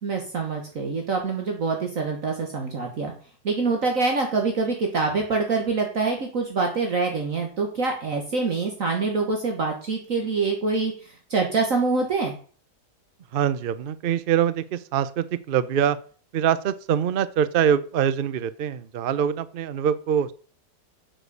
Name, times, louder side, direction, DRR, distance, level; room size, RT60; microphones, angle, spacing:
voice 1, 0.0-3.1 3.4-10.9 11.3-12.3, right 4 dB, 55° right, 2 dB, 1.7 m, -25 dB
voice 2, 13.3-16.0 16.3-20.3, right 9 dB, 70° right, 15 dB, 0.5 m, -24 dB
7.7 x 6.3 x 6.8 m, 0.42 s
omnidirectional pair, 1.8 m